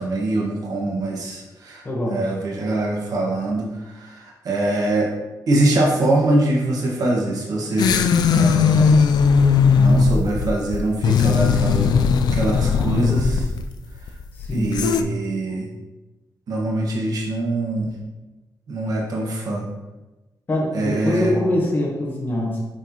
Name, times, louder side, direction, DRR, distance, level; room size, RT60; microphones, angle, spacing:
voice 1, 0.0-5.1 5.5-8.0 8.3-9.1 9.8-12.0 12.3-13.5 14.5-15.7 16.5-17.9 18.7-19.6 20.7-21.4, right 2 dB, 60° right, -2 dB, 1.5 m, -23 dB
voice 2, 1.8-2.2 14.3-15.2 20.5-22.6, left 1 dB, 25° left, -4 dB, 1.1 m, -24 dB
sound 1, 7.8-15.0, left 5 dB, 75° left, 0.4 m, -18 dB
6.3 x 5.8 x 2.9 m, 1.1 s
wide cardioid pair, 155°, 7 cm